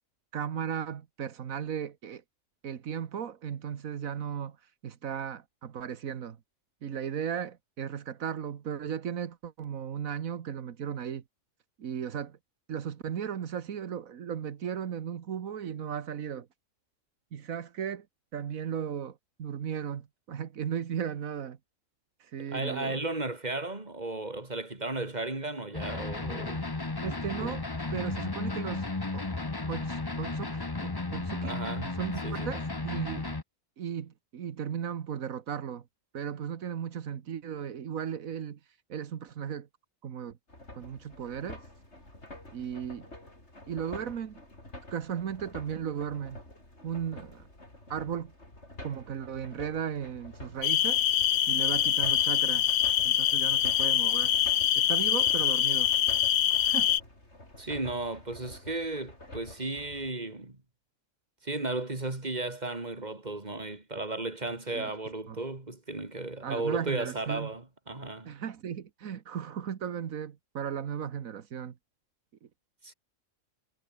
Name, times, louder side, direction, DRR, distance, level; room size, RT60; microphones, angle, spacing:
voice 1, 0.3-2.2 2.6-4.6 4.8-6.4 6.8-11.2 11.8-12.4 12.7-16.5 17.3-18.1 18.3-21.6 22.2-23.0 27.0-29.3 29.7-31.6 32.0-33.4 33.8-35.8 36.1-38.6 38.9-39.7 40.0-40.4 40.7-41.6 42.5-43.1 43.7-44.4 44.9-46.4 46.8-47.5 47.9-48.3 48.8-51.0 51.5-52.7 53.0-54.3 54.7-55.9 56.6-56.9 64.7-64.9 65.3-65.4 66.4-67.5 68.2-71.7, right 8 dB, 85° right, 1.6 m, -36 dB
voice 2, 22.5-26.6 27.4-27.5 31.4-32.5 57.6-60.6 61.4-68.3 72.8-72.9, right 2 dB, 30° right, 3.3 m, -35 dB
sound 1, 25.7-33.4, left 3 dB, 20° left, 1.1 m, -34 dB
sound 2, 40.5-60.1, left 1 dB, 55° left, 7.8 m, -48 dB
sound 3, 50.6-57.0, left 11 dB, 85° left, 1.2 m, -25 dB
omnidirectional pair, 1.4 m